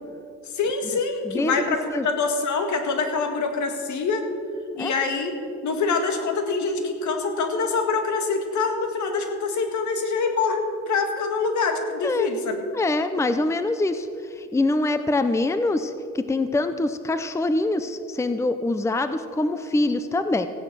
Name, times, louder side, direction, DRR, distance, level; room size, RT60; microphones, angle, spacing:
voice 1, 0.5-4.2 4.7-12.7, left 4 dB, 70° left, 5 dB, 1.9 m, -25 dB
voice 2, 1.2-1.6 1.9-2.1 4.8-4.9 12.0-12.3 12.7-14.1 14.4-20.5, left 2 dB, 10° left, 10 dB, 0.6 m, -24 dB
15.5 x 9.4 x 6.2 m, 2.4 s
cardioid pair, 90°, 30 cm